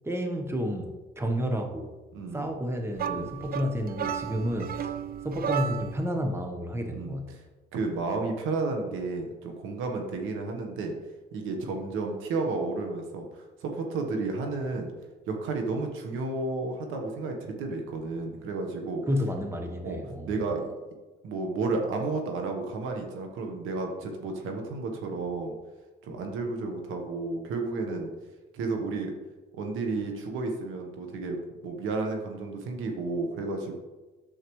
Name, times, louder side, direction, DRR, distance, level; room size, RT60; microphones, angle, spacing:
voice 1, 0.0-1.9 2.3-4.9 5.2-7.3 19.1-20.3, equal, 10° right, 3 dB, 1.0 m, -31 dB
voice 2, 2.1-2.6 3.1-3.4 6.9-7.4 7.7-10.9 11.3-14.9 15.3-19.0 19.8-20.0 20.3-20.7 21.2-25.5 26.0-28.1 28.5-29.1 29.5-31.4 31.6-33.7, right 3 dB, 90° right, 3 dB, 1.2 m, -32 dB
sound 1, 3.0-6.1, right 8 dB, 50° right, 0.5 m, -33 dB
10.0 x 7.6 x 3.1 m, 1.2 s
cardioid pair, 90°, 20 cm